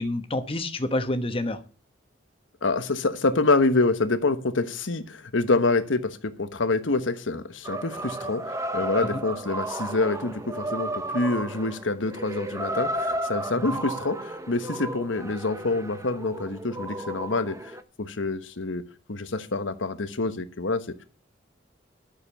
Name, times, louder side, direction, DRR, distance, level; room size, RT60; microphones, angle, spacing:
voice 1, 0.0-1.6 9.1-9.2 13.6-13.8, left 1 dB, 30° left, 8 dB, 1.1 m, -28 dB
voice 2, 2.6-17.7 18.0-18.8 19.1-21.0, left 3 dB, 80° left, 10 dB, 1.2 m, -26 dB
sound 1, 7.6-17.8, right 1 dB, 15° right, 0.8 m, -33 dB
11.5 x 6.8 x 6.9 m, 0.37 s
head